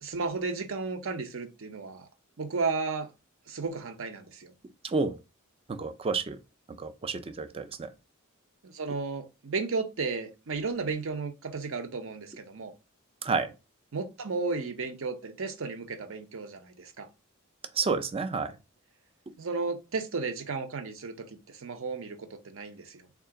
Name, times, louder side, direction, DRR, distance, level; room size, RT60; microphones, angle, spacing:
voice 1, 0.0-2.1 2.4-3.1 3.5-4.5 8.6-12.7 13.9-17.1 19.4-23.1, right 4 dB, 70° right, 0.6 m, -34 dB
voice 2, 5.7-6.4 6.8-7.9 13.2-13.5 17.8-18.5, right 4 dB, 30° right, 0.4 m, -30 dB
3.7 x 2.4 x 3.6 m
head